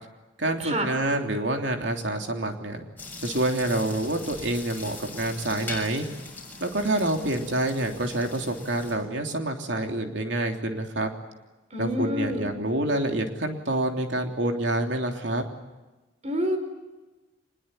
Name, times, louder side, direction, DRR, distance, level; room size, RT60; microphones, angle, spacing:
voice 1, 0.4-2.9 3.2-6.0 6.6-11.1 11.8-15.4, right 1 dB, 65° right, 4 dB, 3.2 m, -27 dB
sound 1, 3.0-8.9, left 3 dB, 10° left, 6.8 m, -41 dB
voice 2, 11.7-12.5 16.2-16.6, equal, 35° right, 6 dB, 5.1 m, -27 dB
25.5 x 21.5 x 9.3 m, 1.1 s
head